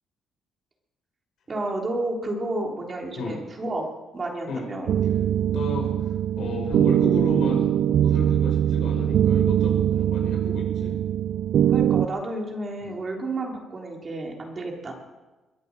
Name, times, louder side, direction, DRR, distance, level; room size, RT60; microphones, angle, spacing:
voice 1, 1.5-3.9 4.1-4.9 11.7-14.9, right 2 dB, 35° right, 0 dB, 3.4 m, -31 dB
sound 1, 4.9-12.1, right 10 dB, 70° right, 0.4 m, -22 dB
voice 2, 5.5-6.1 6.4-11.0 12.8-13.0, left 3 dB, 75° left, 1 dB, 5.9 m, -33 dB
22.5 x 8.4 x 7.4 m, 1.1 s
cardioid pair, 90°, 0 cm